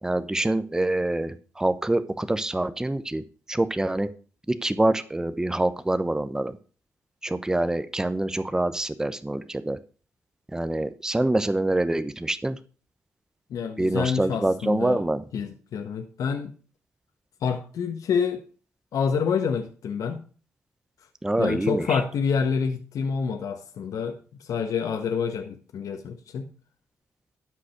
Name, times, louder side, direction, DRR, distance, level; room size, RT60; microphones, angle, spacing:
voice 1, 0.0-4.1 4.5-6.6 7.2-9.8 10.5-12.6 13.8-15.2 21.2-22.0, right 1 dB, 10° right, 0.9 m, -26 dB
voice 2, 13.5-15.0 15.3-16.5 17.4-18.4 18.9-20.2 21.4-26.5, left 6 dB, 70° left, 1.4 m, -27 dB
12.0 x 5.3 x 6.5 m
cardioid pair, 90°, 6 cm